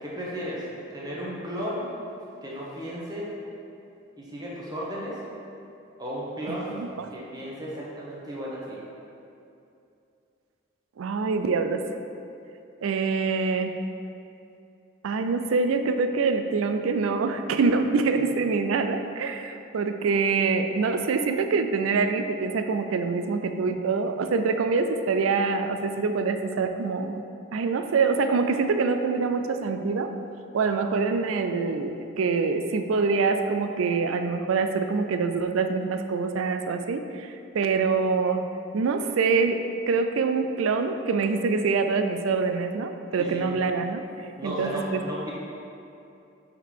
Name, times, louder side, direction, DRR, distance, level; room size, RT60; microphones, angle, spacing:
voice 1, 0.0-0.6 0.9-1.8 2.4-3.3 4.2-5.2 6.0-6.7 7.1-8.8 43.2-43.4 44.4-45.3, equal, 20° right, -5 dB, 0.9 m, -34 dB
voice 2, 6.5-7.1 11.0-11.9 12.8-13.8 15.0-27.2 27.5-30.1 30.5-38.5 38.7-44.0 44.4-45.0, right 4 dB, 85° right, 7 dB, 0.4 m, -25 dB
5.6 x 3.6 x 4.7 m, 2.7 s
head